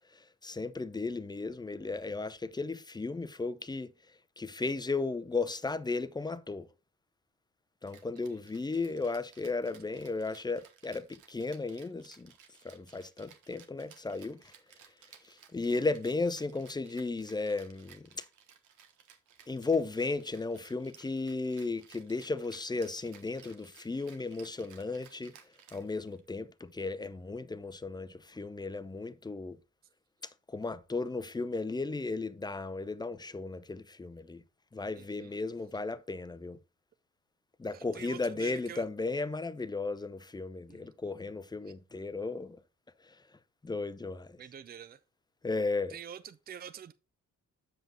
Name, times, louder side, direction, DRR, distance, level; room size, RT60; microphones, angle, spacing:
voice 1, 0.1-3.9 4.4-6.7 7.8-12.3 12.6-14.5 15.3-18.2 19.5-25.4 25.7-29.6 30.5-34.4 34.7-36.6 37.6-42.6 43.1-43.2 43.6-44.4 45.4-46.0, left 3 dB, 15° left, 0.6 m, -35 dB
Rattle (instrument), 7.9-26.3, right 8 dB, 80° right, 1.3 m, -59 dB
voice 2, 34.9-35.4 37.7-38.9 40.7-40.9 44.4-45.0 45.9-46.9, right 8 dB, 30° right, 0.5 m, -46 dB
7.8 x 5.1 x 3.8 m
cardioid pair, 90°, 30 cm